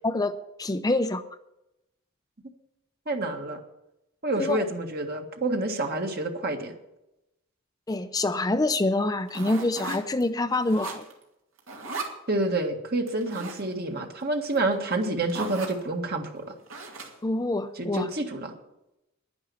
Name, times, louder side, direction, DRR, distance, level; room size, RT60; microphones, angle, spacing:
voice 1, 0.0-1.2 4.4-4.6 7.9-11.0 17.2-18.1, left 2 dB, 20° left, 9 dB, 0.5 m, -26 dB
voice 2, 3.1-3.6 4.2-6.7 12.3-16.4 17.8-18.5, right 2 dB, 50° right, 4 dB, 1.7 m, -28 dB
sound 1, 9.3-10.2 10.5-11.2 11.6-12.2 13.1-13.6 14.6-14.7 14.9-15.0 15.3-15.8 16.7-17.3, right 3 dB, 75° right, 2.5 m, -37 dB
10.5 x 10.5 x 7.0 m, 0.89 s
head